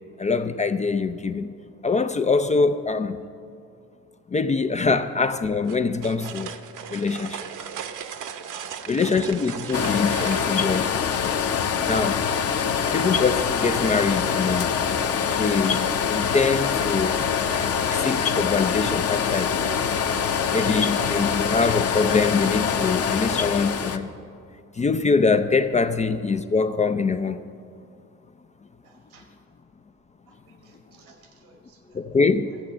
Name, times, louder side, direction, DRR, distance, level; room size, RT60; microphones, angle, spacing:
voice 1, 0.2-1.5 1.8-3.2 4.3-6.5 6.9-7.5 8.9-10.9 11.9-12.3 12.9-14.7 15.4-17.2 17.9-19.5 20.5-24.1 24.8-27.4 31.9-32.5, left 4 dB, 15° left, 9 dB, 0.4 m, -23 dB
sound 1, 5.7-10.6, right 8 dB, 45° right, 0.9 m, -37 dB
sound 2, 9.7-24.0, left 7 dB, 35° left, 0.9 m, -24 dB
voice 2, 28.8-29.4 30.3-32.1 32.5-32.6, right 3 dB, 85° right, 2 dB, 2.2 m, -56 dB
13.5 x 7.7 x 6.9 m, 2.4 s
hypercardioid pair, 65°, 42 cm